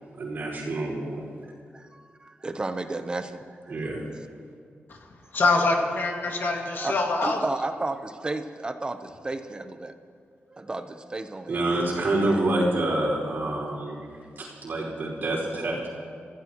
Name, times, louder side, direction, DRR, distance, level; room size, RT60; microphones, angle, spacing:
voice 1, 0.2-1.2 3.7-4.0 11.5-14.0 14.4-15.9, right 2 dB, 55° right, -3 dB, 5.1 m, -27 dB
voice 2, 1.7-3.8 4.1-4.3 6.2-6.4 6.8-9.9 10.5-11.8 12.2-13.0, right 2 dB, 20° right, 8 dB, 0.8 m, -33 dB
voice 3, 5.3-7.4, left 3 dB, 60° left, 1 dB, 2.2 m, -24 dB
29.5 x 16.0 x 3.0 m, 2.2 s
wide cardioid pair, 145°, 4 cm